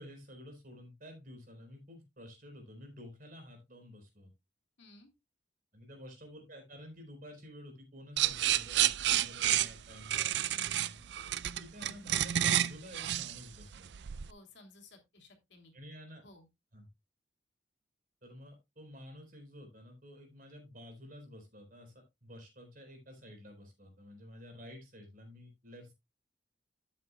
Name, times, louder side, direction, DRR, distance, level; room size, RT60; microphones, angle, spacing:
voice 1, 0.0-4.3 5.7-11.0 11.6-13.9 15.7-16.2 16.7-16.9 18.2-25.9, equal, 45° right, 4 dB, 4.2 m, -51 dB
voice 2, 4.8-5.1 14.3-15.7 16.2-16.5, left 2 dB, 65° left, 4 dB, 2.9 m, -57 dB
sound 1, 8.2-14.3, right 12 dB, 60° right, 0.4 m, -30 dB
12.5 x 8.4 x 2.3 m, 0.21 s
head